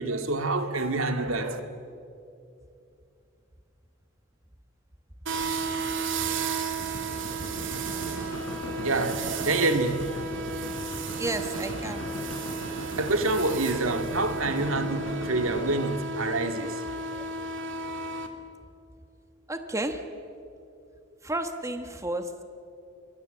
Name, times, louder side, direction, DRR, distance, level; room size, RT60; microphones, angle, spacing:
voice 1, 0.0-1.6 8.6-10.3 13.0-16.8, right 2 dB, 80° right, 6 dB, 2.1 m, -27 dB
sound 1, 5.2-18.3, right 4 dB, 65° right, 2.6 m, -33 dB
sound 2, 6.7-15.7, equal, 75° left, 4.0 m, -38 dB
voice 2, 11.2-12.0 17.1-17.3 19.5-20.0 21.2-22.4, right 1 dB, 15° right, 7 dB, 1.3 m, -32 dB
29.5 x 23.5 x 7.9 m, 2.7 s
head